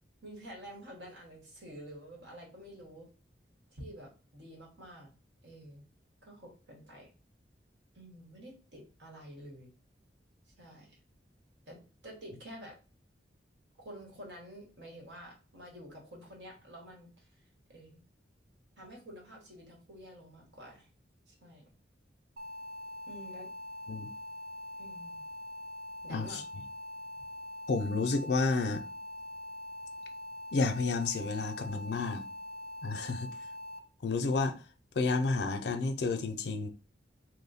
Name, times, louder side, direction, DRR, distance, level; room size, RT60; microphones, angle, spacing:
voice 1, 0.2-3.1 3.7-5.1 5.4-5.8 6.2-7.1 7.9-9.7 10.6-11.0 11.7-12.8 13.8-17.3 17.7-18.0 18.8-20.9 21.3-21.7 23.1-23.5 24.8-25.2 26.0-26.4, equal, 75° right, 1.3 m, -49 dB
sound 1, 22.4-33.8, left 1 dB, 55° right, 0.5 m, -43 dB
voice 2, 26.1-26.4 27.7-28.9 30.5-32.2 32.8-33.3 34.0-34.6 34.9-36.7, left 3 dB, 65° left, 0.5 m, -30 dB
3.0 x 2.1 x 3.9 m
head